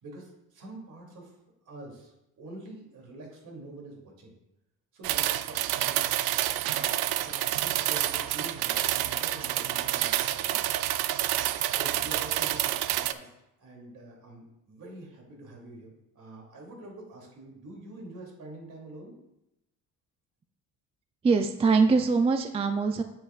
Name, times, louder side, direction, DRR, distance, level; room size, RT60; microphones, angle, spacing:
voice 1, 0.0-1.3 1.6-4.3 4.9-6.1 6.6-7.0 7.2-10.6 11.7-13.3 13.6-19.1, right 1 dB, 55° right, -1 dB, 2.7 m, -46 dB
sound 1, 5.0-13.1, right 14 dB, 85° right, 0.5 m, -28 dB
voice 2, 21.2-23.0, right 4 dB, 20° right, 7 dB, 0.3 m, -23 dB
8.7 x 8.2 x 2.4 m, 0.88 s
cardioid pair, 130°, 36 cm